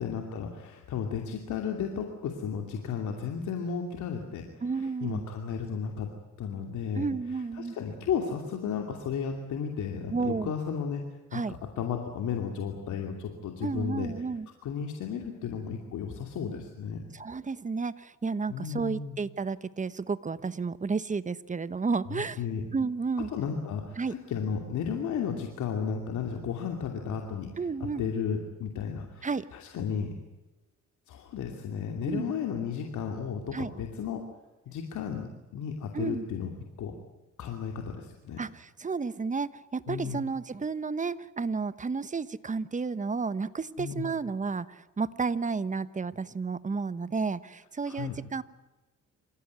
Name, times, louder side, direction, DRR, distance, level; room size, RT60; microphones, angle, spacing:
voice 1, 0.0-6.1 6.4-7.1 7.6-11.0 11.3-14.1 14.6-17.0 18.5-19.2 22.1-22.7 23.3-27.5 28.0-30.1 31.1-34.2 34.7-36.5 36.8-36.9 37.4-38.4 39.9-40.3 43.8-44.1 47.9-48.2, left 7 dB, 75° left, 3 dB, 2.7 m, -34 dB
voice 2, 4.6-5.2 6.9-7.7 10.1-10.5 11.3-11.5 13.6-14.5 17.1-22.4 22.7-23.3 24.0-24.1 27.6-28.1 29.2-29.4 32.1-32.3 33.5-33.7 35.9-36.3 38.4-48.4, right 4 dB, 25° right, 15 dB, 1.1 m, -32 dB
27.5 x 16.0 x 9.6 m, 1.1 s
cardioid pair, 90°, 30 cm